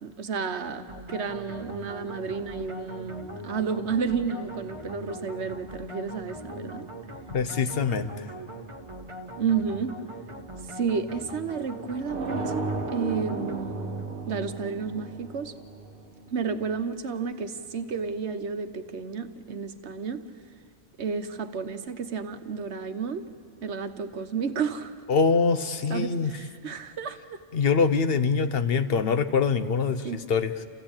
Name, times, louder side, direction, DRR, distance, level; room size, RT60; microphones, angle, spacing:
voice 1, 0.0-6.9 9.4-10.0 10.7-14.0 14.3-15.5 16.3-20.3 21.0-23.3 23.6-25.0 25.9-27.4 30.0-30.3, right 5 dB, 70° right, 9 dB, 1.3 m, -31 dB
sound 1, 0.9-14.2, right 1 dB, 25° right, 1.5 m, -41 dB
voice 2, 7.3-8.2 25.1-26.3 27.5-30.6, left 5 dB, 60° left, 10 dB, 1.0 m, -24 dB
sound 2, 12.0-16.7, right 2 dB, 50° right, 1.7 m, -34 dB
29.0 x 15.0 x 8.8 m, 2.2 s
omnidirectional pair, 1.2 m